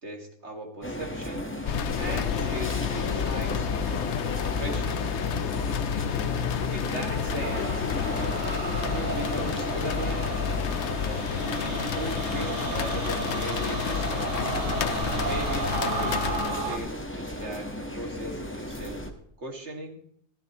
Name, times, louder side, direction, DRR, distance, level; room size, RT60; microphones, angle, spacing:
voice 1, 0.0-1.5 2.0-5.2 6.5-7.9 8.9-10.4 11.0-14.4 15.1-19.0 19.4-20.0, right 1 dB, 65° right, 1 dB, 2.3 m, -38 dB
sound 1, 0.8-19.1, left 1 dB, 10° left, 1.2 m, -35 dB
sound 2, 1.7-17.0, left 8 dB, 70° left, 1.0 m, -30 dB
sound 3, 7.2-16.8, right 5 dB, 85° right, 1.5 m, -34 dB
15.5 x 15.0 x 3.0 m, 0.66 s
omnidirectional pair, 1.2 m